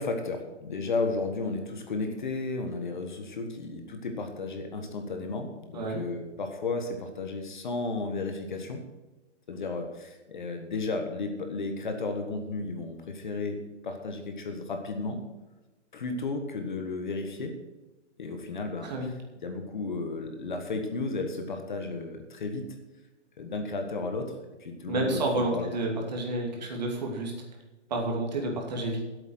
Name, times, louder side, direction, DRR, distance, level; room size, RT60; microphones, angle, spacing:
voice 1, 0.0-8.8 9.5-15.2 15.9-17.5 18.2-18.9 19.4-22.6 23.4-24.3 24.6-25.6, left 3 dB, 40° left, 5 dB, 1.5 m, -33 dB
voice 2, 24.9-27.3 27.9-29.1, right 2 dB, 35° right, 0 dB, 2.6 m, -30 dB
12.0 x 8.3 x 6.2 m, 1.1 s
hypercardioid pair, 180°, 36 cm